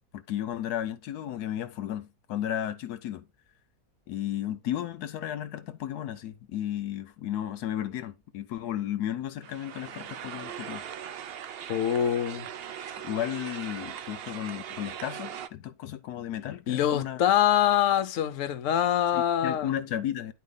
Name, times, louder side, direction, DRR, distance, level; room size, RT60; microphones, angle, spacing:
voice 1, 0.1-3.3 4.1-10.8 13.0-17.2 19.1-20.3, left 11 dB, 85° left, 1.2 m, -34 dB
sound 1, 9.4-15.5, right 9 dB, 65° right, 0.6 m, -40 dB
voice 2, 11.7-12.5 12.8-12.9 16.7-19.8, left 10 dB, 60° left, 1.1 m, -25 dB
9.5 x 4.5 x 3.9 m
omnidirectional pair, 1.7 m